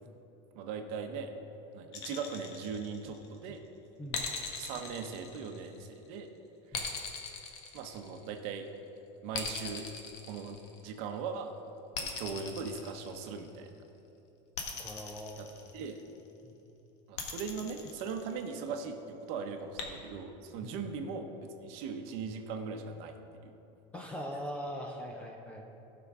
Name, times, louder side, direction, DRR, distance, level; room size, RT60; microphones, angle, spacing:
voice 1, 0.5-1.3 1.7-3.6 4.6-6.3 7.7-8.7 9.2-9.9 10.3-10.6 10.8-11.5 12.0-13.9 15.4-15.5 15.7-16.0 17.1-23.1 23.4-23.5, right 5 dB, 45° right, 5 dB, 0.8 m, -39 dB
sound 1, 1.9-3.3 4.1-6.0 6.7-8.5 9.3-11.0 11.9-13.6 14.5-16.1 17.2-18.7 19.8-19.9, left 5 dB, 85° left, 1.4 m, -40 dB
voice 2, 4.0-4.3 6.7-6.9 14.8-15.4 16.4-16.6 20.6-20.7 23.9-25.8, equal, 10° left, 1 dB, 0.4 m, -41 dB
16.0 x 5.9 x 3.7 m, 3.0 s
cardioid pair, 180°, 14 cm